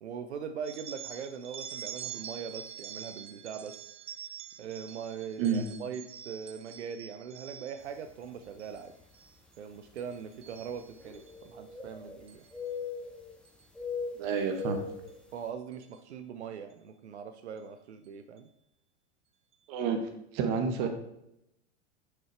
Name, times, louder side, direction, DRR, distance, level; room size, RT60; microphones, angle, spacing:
voice 1, 0.0-3.9 4.6-8.9 9.6-12.4 15.3-18.5, right 7 dB, 90° right, 8 dB, 0.6 m, -41 dB
sound 1, 0.6-7.9 8.4-8.8 9.1-9.6 10.0-11.3 12.3-12.5 13.5-13.6 14.6-14.7 15.1-15.2 15.7-16.0, right 9 dB, 20° right, 0.4 m, -45 dB
sound 2, 8.1-8.2 9.0-9.1 11.0-12.2 12.5-13.4 13.8-15.1, left 5 dB, 5° left, 0.9 m, -39 dB
voice 2, 14.2-14.8 19.7-20.0 20.3-20.9, right 6 dB, 55° right, 5 dB, 1.1 m, -29 dB
6.1 x 4.9 x 4.4 m, 0.82 s
hypercardioid pair, 100°, 33 cm